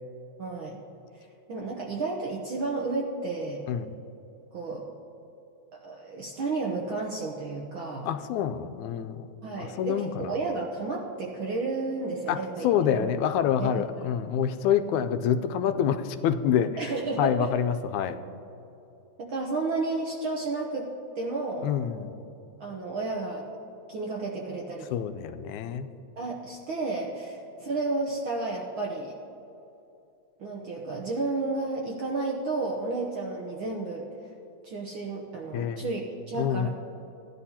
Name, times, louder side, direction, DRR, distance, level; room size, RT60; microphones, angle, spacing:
voice 1, 0.4-0.8 1.1-1.2 1.5-3.7 4.5-4.9 5.7-8.1 9.4-13.1 13.6-13.7 14.0-14.1 16.8-17.5 19.2-20.9 21.2-21.7 22.6-23.5 23.9-24.9 26.2-29.2 30.4-34.1 34.6-36.7, right 3 dB, 65° right, -1 dB, 1.3 m, -32 dB
voice 2, 8.1-9.3 9.6-10.4 12.3-16.8 17.2-18.2 21.6-22.1 24.9-25.9 35.5-35.9 36.4-36.7, left 9 dB, 85° left, 9 dB, 2.0 m, -27 dB
16.5 x 11.0 x 2.8 m, 2.9 s
omnidirectional pair, 3.3 m